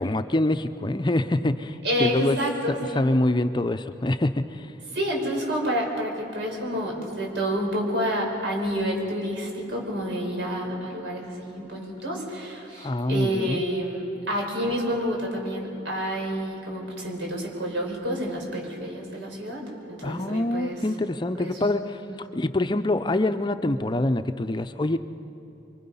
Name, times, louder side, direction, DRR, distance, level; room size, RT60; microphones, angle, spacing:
voice 1, 0.0-2.4 2.7-4.7 12.8-13.6 20.0-25.0, left 1 dB, 25° left, 9 dB, 0.5 m, -25 dB
voice 2, 1.8-3.0 4.9-20.8 21.4-21.5 22.1-22.2, equal, 85° right, 0 dB, 5.2 m, -29 dB
26.0 x 24.0 x 5.5 m, 2.9 s
head